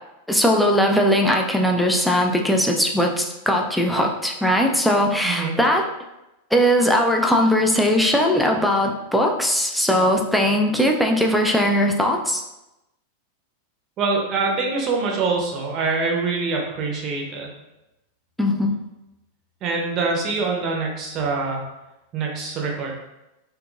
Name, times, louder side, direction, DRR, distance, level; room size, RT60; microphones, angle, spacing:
voice 1, 0.3-5.9 6.5-12.4 18.4-18.8, equal, ahead, 1 dB, 0.4 m, -19 dB
voice 2, 5.2-5.5 14.0-17.5 19.6-21.6 22.1-23.0, right 4 dB, 35° right, -1 dB, 0.7 m, -24 dB
3.6 x 2.7 x 2.4 m, 0.94 s
figure-of-eight pair, 90°, 0 cm